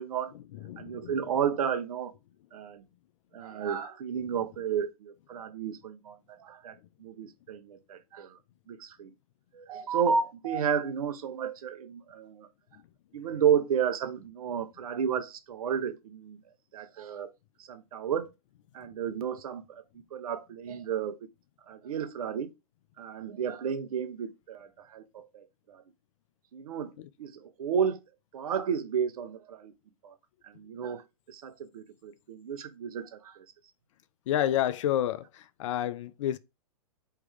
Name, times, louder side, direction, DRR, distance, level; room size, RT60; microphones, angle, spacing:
voice 1, 0.0-0.3 0.8-2.1 2.5-2.8 3.3-8.4 8.7-9.1 9.5-12.5 13.1-16.4 16.7-17.3 17.6-18.3 18.7-19.8 20.1-21.3 21.7-22.5 23.0-25.8 26.5-26.9 27.2-28.0 28.3-29.7 30.0-30.1 30.4-33.4, right 7 dB, 65° right, 0.9 m, -32 dB
voice 2, 0.5-1.2 12.7-12.8 27.0-27.1 34.3-36.4, left 11 dB, 50° left, 0.5 m, -30 dB
4.7 x 3.4 x 3.3 m
hypercardioid pair, 125°, 20 cm